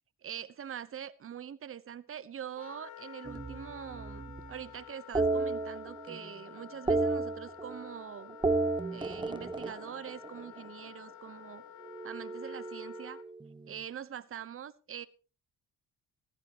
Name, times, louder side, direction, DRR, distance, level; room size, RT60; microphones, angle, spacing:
voice 1, 0.2-8.4 8.9-11.6 12.0-13.2 13.7-15.1, right 9 dB, 45° right, 16 dB, 1.0 m, -44 dB
Wind instrument woodwind instrument, 2.6-13.2, left 11 dB, 75° left, 1.3 m, -51 dB
sound 1, 3.2-4.5 5.1-6.3 6.6-8.0 8.3-10.7 11.8-13.6, right 3 dB, 15° right, 1.2 m, -33 dB
15.5 x 15.0 x 3.0 m, 0.33 s
cardioid pair, 90°, 30 cm